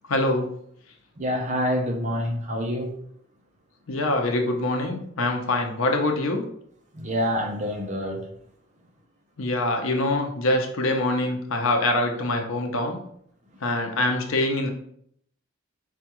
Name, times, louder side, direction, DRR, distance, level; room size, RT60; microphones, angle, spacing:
voice 1, 0.1-0.5 3.9-6.4 9.4-13.0 13.6-14.7, left 2 dB, 90° left, 0.7 m, -24 dB
voice 2, 1.2-2.9 6.9-8.3, equal, 35° right, 0.6 m, -27 dB
5.0 x 2.3 x 2.9 m
head